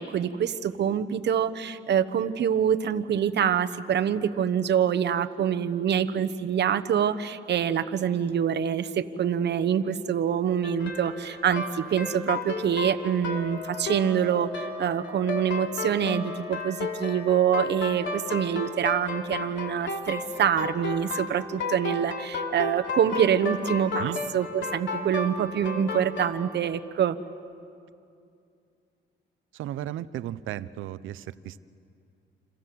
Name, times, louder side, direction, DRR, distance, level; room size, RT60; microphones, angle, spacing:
voice 1, 0.0-27.2, right 8 dB, 60° right, 11 dB, 1.2 m, -25 dB
sound 1, 10.6-26.3, left 4 dB, 70° left, 3.2 m, -33 dB
Wind instrument woodwind instrument, 13.3-18.6, left 6 dB, 85° left, 7.4 m, -41 dB
voice 2, 29.5-31.6, right 12 dB, 85° right, 15 dB, 0.8 m, -34 dB
27.5 x 27.5 x 7.8 m, 2.4 s
cardioid pair, 90°, 20 cm